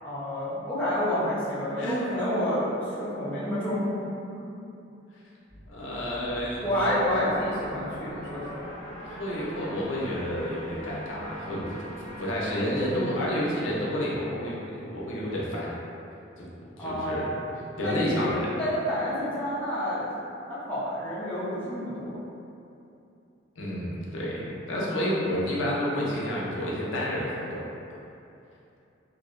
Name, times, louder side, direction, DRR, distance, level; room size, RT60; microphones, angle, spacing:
voice 1, 0.0-4.1 4.3-4.6 6.6-8.7 16.8-17.3 17.8-20.1 20.5-22.2, left 1 dB, 5° left, -11 dB, 0.5 m, -29 dB
sound 1, 5.5-15.0, equal, 80° right, 1.2 m, -43 dB
voice 2, 5.7-6.6 9.0-14.6 14.9-15.8 16.4-17.3 17.8-18.5 23.6-27.6, equal, 80° left, -6 dB, 0.5 m, -30 dB
2.5 x 2.0 x 2.4 m, 2.7 s
head